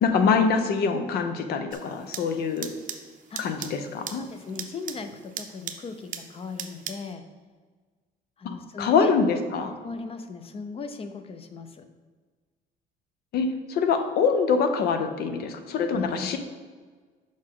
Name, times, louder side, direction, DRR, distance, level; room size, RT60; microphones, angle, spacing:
voice 1, 0.0-2.7 3.4-4.2 8.8-9.7 13.3-16.4, left 5 dB, 70° left, 8 dB, 0.7 m, -24 dB
sound 1, 1.7-7.1, right 8 dB, 50° right, 0.6 m, -40 dB
voice 2, 4.1-7.3 8.4-9.1 9.8-11.9 15.9-16.4, left 4 dB, 35° left, 8 dB, 0.6 m, -37 dB
6.3 x 4.9 x 3.8 m, 1.5 s
cardioid pair, 110°, 17 cm